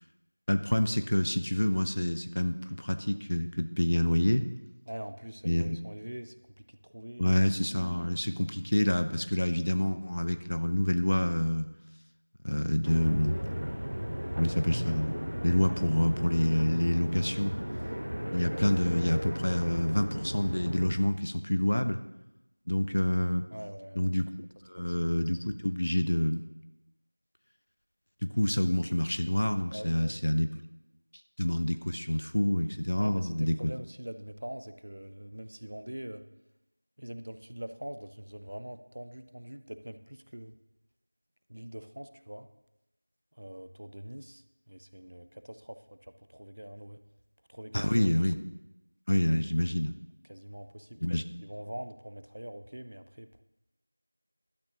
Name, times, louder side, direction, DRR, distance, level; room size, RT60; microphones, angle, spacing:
voice 1, 0.5-4.5 5.4-5.8 7.2-11.7 12.4-13.5 14.4-15.2 15.4-17.6 18.3-22.0 22.7-23.4 24.0-24.3 24.7-26.4 28.4-30.5 31.4-33.6 47.7-48.4 49.1-49.9 51.0-51.2, left 1 dB, 30° left, 9 dB, 0.4 m, -27 dB
voice 2, 4.9-6.3 6.8-7.4 23.5-24.1 24.8-24.9 29.7-30.2 33.0-36.2 37.0-40.5 41.5-42.5 43.4-44.4 44.7-46.0 46.3-47.0 47.5-48.1 50.3-53.4, equal, 30° right, 10 dB, 0.5 m, -43 dB
sound 1, 12.8-20.9, equal, 55° right, 0.9 m, -35 dB
15.5 x 12.0 x 2.9 m, 0.91 s
figure-of-eight pair, 180°, 0 cm